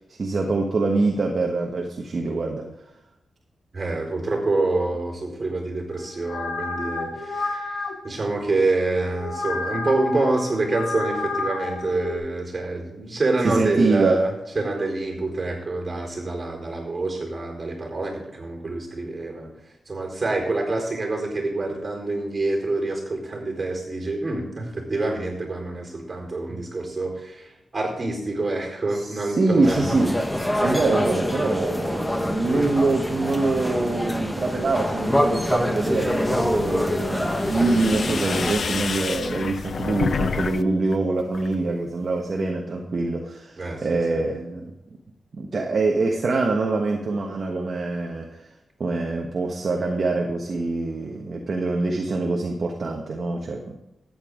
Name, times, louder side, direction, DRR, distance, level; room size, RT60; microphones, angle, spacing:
voice 1, 0.1-2.7 13.4-14.2 26.5-26.6 28.9-30.2 30.6-44.7 45.3-48.4 48.8-53.7, right 3 dB, 50° right, 1 dB, 1.2 m, -24 dB
voice 2, 3.7-19.5 19.9-30.0 43.6-44.2, right 2 dB, 30° right, 0 dB, 4.3 m, -27 dB
sound 1, 6.0-12.2, left 3 dB, 90° left, 1.2 m, -31 dB
sound 2, 29.6-38.5, left 1 dB, 10° left, 0.9 m, -25 dB
sound 3, 35.9-40.6 40.9-41.5, left 5 dB, 55° left, 0.5 m, -30 dB
14.0 x 9.0 x 3.7 m, 0.90 s
wide cardioid pair, 110°, 0 cm